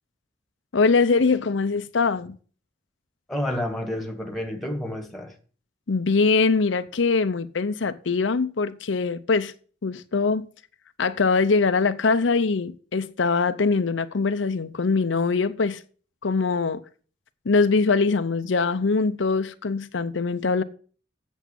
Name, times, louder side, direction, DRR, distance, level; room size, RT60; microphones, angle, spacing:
voice 1, 0.7-2.3 5.9-9.5 9.8-10.5 11.0-15.8 16.2-16.8 17.5-20.6, left 4 dB, 80° left, 0.6 m, -22 dB
voice 2, 3.3-5.3, left 1 dB, ahead, 1.7 m, -29 dB
8.2 x 7.2 x 8.2 m
head